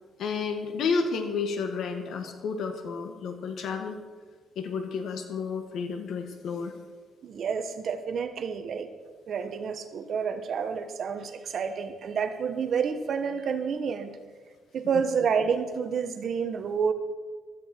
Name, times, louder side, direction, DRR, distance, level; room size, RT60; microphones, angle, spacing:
voice 1, 0.2-4.0 4.6-6.7, left 5 dB, 70° left, 6 dB, 1.8 m, -31 dB
voice 2, 7.2-8.9 9.3-14.1 14.7-16.9, right 6 dB, 55° right, 8 dB, 1.3 m, -29 dB
16.0 x 13.0 x 4.5 m, 1.4 s
cardioid pair, 120°, 0 cm